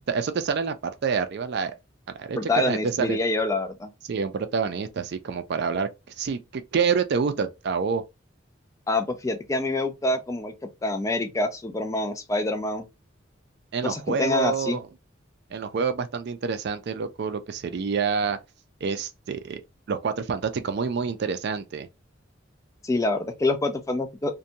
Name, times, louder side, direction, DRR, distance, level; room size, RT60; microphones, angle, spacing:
voice 1, 0.1-1.7 2.1-2.4 2.7-3.2 4.1-5.9 6.2-8.0 13.7-14.8 15.5-18.4 18.8-19.6 19.9-21.9, right 5 dB, 55° right, 0.4 m, -27 dB
voice 2, 2.3-3.9 8.9-10.5 10.8-12.9 13.8-14.8 22.8-24.4, left 2 dB, 15° left, 0.3 m, -26 dB
2.6 x 2.2 x 2.7 m
head